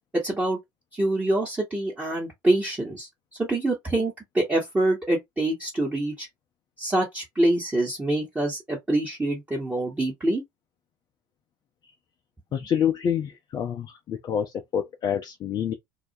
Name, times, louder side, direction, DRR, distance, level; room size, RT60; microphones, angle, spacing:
voice 1, 0.2-0.6 0.9-3.1 3.4-6.3 6.8-10.4, right 1 dB, 15° right, 1.0 m, -25 dB
voice 2, 12.5-15.7, left 8 dB, 40° left, 0.5 m, -27 dB
2.3 x 2.0 x 2.8 m
hypercardioid pair, 70°, 11 cm